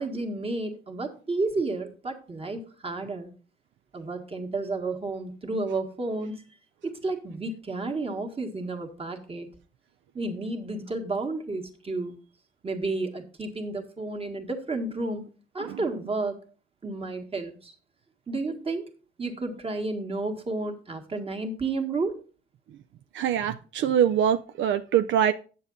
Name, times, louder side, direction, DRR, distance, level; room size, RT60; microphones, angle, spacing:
voice 1, 0.0-3.3 3.9-6.4 6.8-9.5 10.1-12.2 12.6-15.2 15.5-16.4 16.8-17.7 18.3-18.9 19.2-22.2, right 3 dB, 30° right, 1.7 m, -31 dB
voice 2, 23.1-25.3, right 9 dB, 70° right, 0.5 m, -23 dB
8.4 x 7.1 x 3.9 m
cardioid pair, 90°, 20 cm